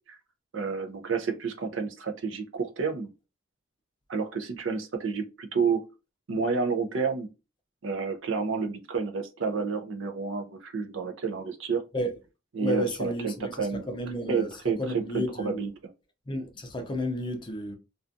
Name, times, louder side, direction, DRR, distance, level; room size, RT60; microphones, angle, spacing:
voice 1, 0.5-3.1 4.1-5.8 6.3-7.3 7.8-11.8 12.5-13.8 14.3-15.7, right 5 dB, 75° right, 0.5 m, -30 dB
voice 2, 12.6-15.6 16.3-17.7, equal, 25° left, 0.5 m, -32 dB
2.4 x 2.3 x 2.6 m
head